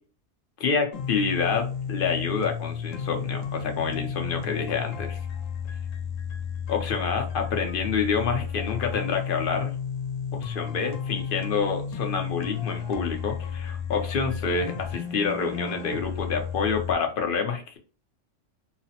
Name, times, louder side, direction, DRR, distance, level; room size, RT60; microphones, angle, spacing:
voice 1, 0.6-5.2 6.7-9.7 10.3-17.8, left 5 dB, 55° left, 4 dB, 0.7 m, -28 dB
sound 1, 0.9-16.9, left 7 dB, 90° left, 1.1 m, -33 dB
3.1 x 2.0 x 2.7 m, 0.37 s
omnidirectional pair, 1.3 m